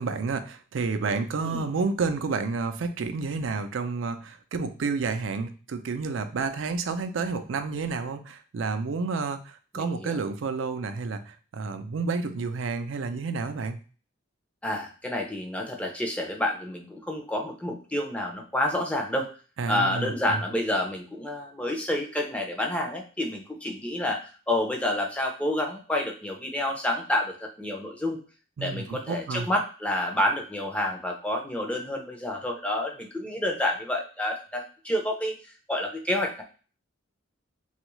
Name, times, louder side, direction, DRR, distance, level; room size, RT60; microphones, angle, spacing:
voice 1, 0.0-13.8 19.6-20.4 28.6-29.5, right 4 dB, 70° right, 9 dB, 0.4 m, -30 dB
voice 2, 9.7-10.2 14.6-19.3 19.7-28.2 28.6-35.4 35.7-36.4, left 1 dB, 5° left, 1 dB, 0.5 m, -29 dB
3.4 x 2.4 x 3.0 m, 0.38 s
head